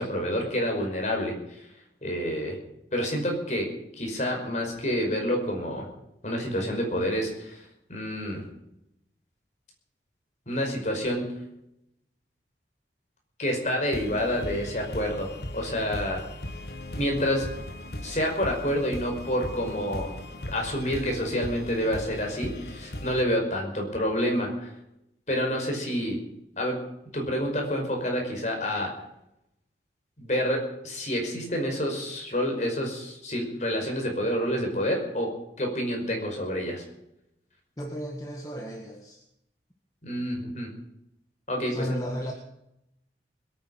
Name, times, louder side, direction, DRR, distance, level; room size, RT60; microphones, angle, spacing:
voice 1, 0.0-1.7 2.0-2.6 2.9-3.7 4.0-5.9 6.2-8.4 10.5-11.3 13.4-16.2 17.0-17.5 18.0-20.1 20.5-24.7 25.3-26.2 26.6-26.8 27.1-28.9 30.2-35.3 35.6-36.8 40.0-40.7 41.5-42.0, equal, 40° left, 1 dB, 5.4 m, -28 dB
sound 1, 13.9-23.2, left 1 dB, 65° left, 1.6 m, -38 dB
voice 2, 37.8-39.2 41.7-42.3, equal, 20° left, 2 dB, 1.7 m, -34 dB
21.0 x 9.8 x 6.5 m, 0.81 s
head